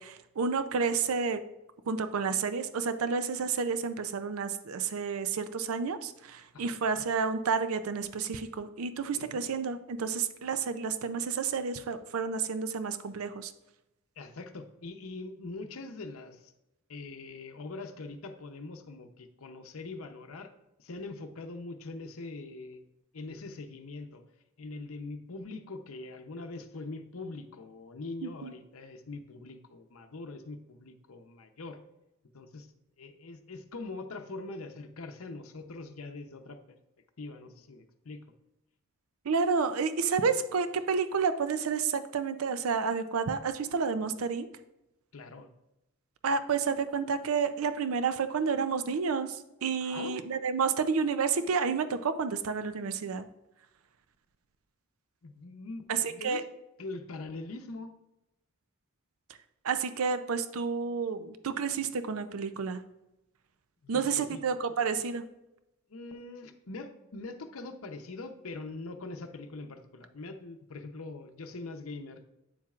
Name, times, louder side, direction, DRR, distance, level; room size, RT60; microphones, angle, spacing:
voice 1, 0.0-1.4 1.9-13.5 28.2-28.5 39.3-44.5 46.2-53.2 55.9-56.4 59.6-62.8 63.9-65.2, right 5 dB, 75° right, 11 dB, 0.5 m, -30 dB
voice 2, 14.2-16.5 16.9-20.5 20.8-22.8 23.1-24.2 24.6-31.8 32.3-32.7 33.0-36.6 37.2-38.2 45.1-45.5 49.8-50.2 55.2-56.4 56.8-57.9 63.8-64.4 65.9-72.2, left 3 dB, 75° left, 6 dB, 0.7 m, -42 dB
8.7 x 7.3 x 2.4 m, 0.91 s
head